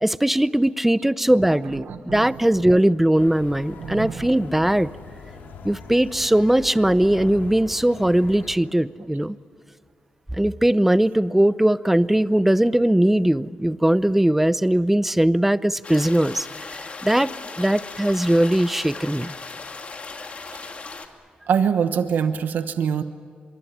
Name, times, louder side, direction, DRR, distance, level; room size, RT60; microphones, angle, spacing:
voice 1, 0.0-4.9 5.6-9.4 10.4-16.5 16.7-17.3 17.6-19.3, right 1 dB, 5° right, 16 dB, 0.7 m, -20 dB
voice 2, 1.4-2.4 3.8-4.4 20.5-20.7 21.5-23.0, right 7 dB, 75° right, 9 dB, 1.0 m, -25 dB
sound 1, 3.2-8.6, left 4 dB, 85° left, 4.2 m, -41 dB
sound 2, 15.8-21.1, left 4 dB, 45° left, 2.4 m, -37 dB
24.0 x 23.5 x 9.9 m, 2.1 s
cardioid pair, 90°, 3 cm